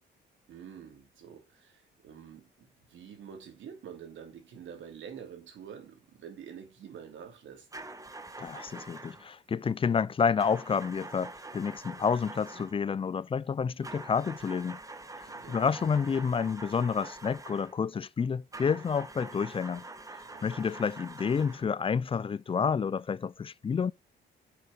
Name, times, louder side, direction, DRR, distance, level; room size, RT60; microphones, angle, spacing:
voice 1, 0.5-7.7 15.2-16.3 20.2-20.7, right 8 dB, 75° right, 2.7 m, -48 dB
sound 1, 7.7-9.3 10.4-12.8 13.8-17.8 18.5-21.8, right 2 dB, 15° right, 1.3 m, -45 dB
voice 2, 8.4-14.8 15.5-19.8 20.4-23.9, left 6 dB, 30° left, 0.4 m, -29 dB
6.2 x 5.5 x 5.3 m
cardioid pair, 90°, 20 cm